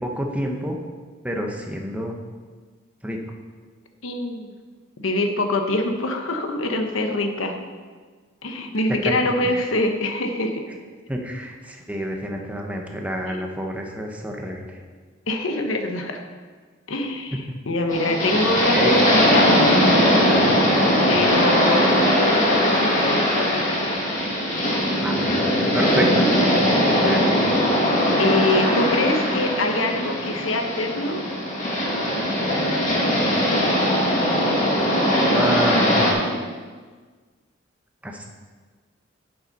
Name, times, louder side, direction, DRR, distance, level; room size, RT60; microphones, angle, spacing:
voice 1, 0.0-0.8 1.2-2.1 3.0-3.2 9.0-9.1 9.4-9.6 11.1-14.8 17.3-17.4 18.3-19.0 20.2-21.2 25.0-26.3 26.6-27.5 35.3-36.1 38.0-38.3, equal, 5° right, 1 dB, 1.0 m, -29 dB
voice 2, 4.0-4.5 5.0-7.7 8.4-10.6 13.3-13.4 15.3-16.2 16.9-19.6 21.1-24.0 28.2-31.2, left 2 dB, 80° left, 5 dB, 1.0 m, -24 dB
sound 1, 17.9-36.1, equal, 40° left, 2.1 m, -20 dB
8.0 x 7.3 x 5.4 m, 1.5 s
head